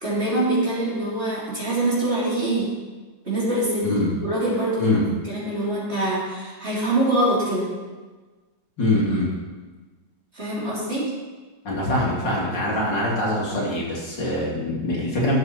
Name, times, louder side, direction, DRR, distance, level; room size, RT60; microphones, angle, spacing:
voice 1, 0.0-2.7 3.3-3.9 4.2-7.7 10.3-11.1, right 1 dB, 30° right, -7 dB, 3.7 m, -24 dB
voice 2, 3.8-4.1 4.8-5.1 8.8-9.3 11.6-15.4, left 1 dB, 60° left, -5 dB, 3.4 m, -23 dB
15.0 x 7.9 x 4.3 m, 1.3 s
omnidirectional pair, 2.2 m